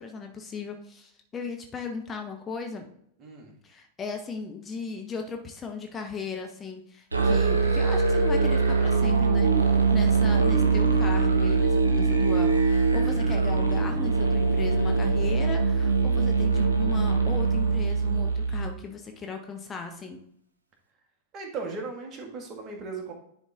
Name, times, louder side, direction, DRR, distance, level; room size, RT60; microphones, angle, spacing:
voice 1, 0.0-2.9 3.6-20.2, left 5 dB, 20° left, 3 dB, 0.9 m, -37 dB
voice 2, 3.2-3.5 21.3-23.1, right 4 dB, 30° right, 2 dB, 1.9 m, -37 dB
Musical instrument, 7.1-18.7, right 4 dB, 75° right, 1.2 m, -22 dB
10.5 x 4.1 x 3.6 m, 0.69 s
figure-of-eight pair, 90°, 0 cm